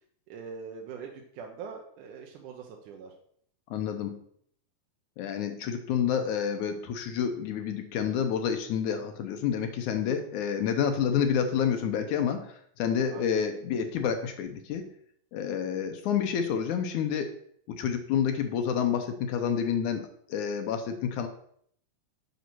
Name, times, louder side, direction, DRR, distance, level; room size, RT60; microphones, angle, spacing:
voice 1, 0.3-3.1 13.1-13.4, right 6 dB, 70° right, 1 dB, 2.3 m, -42 dB
voice 2, 3.7-4.2 5.2-14.9 15.3-17.3 17.7-21.3, left 7 dB, 70° left, 6 dB, 2.0 m, -29 dB
8.3 x 5.5 x 6.0 m, 0.64 s
omnidirectional pair, 4.1 m